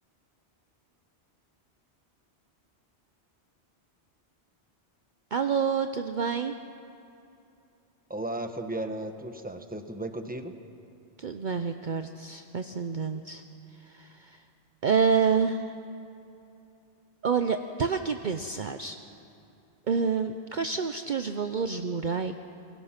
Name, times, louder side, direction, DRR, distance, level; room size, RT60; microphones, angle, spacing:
voice 1, 5.3-6.5 11.2-13.4 13.8-14.4 14.8-15.7 17.2-19.0 19.9-22.3, right 5 dB, 50° right, 7 dB, 0.8 m, -28 dB
voice 2, 8.1-10.5, right 1 dB, 10° right, 6 dB, 1.2 m, -35 dB
28.0 x 22.0 x 5.9 m, 2.7 s
omnidirectional pair, 1.1 m